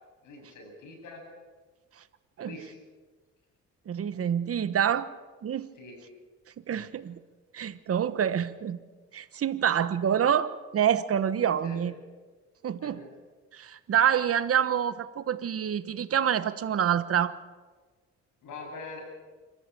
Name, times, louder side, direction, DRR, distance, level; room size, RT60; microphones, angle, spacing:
voice 1, 0.2-1.2 2.4-2.7 5.8-6.0 11.4-11.8 12.8-13.1 18.4-19.0, left 3 dB, 80° left, 2 dB, 7.7 m, -43 dB
voice 2, 3.9-5.1 5.4-5.7 6.7-7.2 7.5-8.8 9.1-11.9 12.6-13.0 13.5-17.3, right 9 dB, 50° right, 14 dB, 1.2 m, -27 dB
25.5 x 14.0 x 8.7 m, 1.3 s
cardioid pair, 90°, 30 cm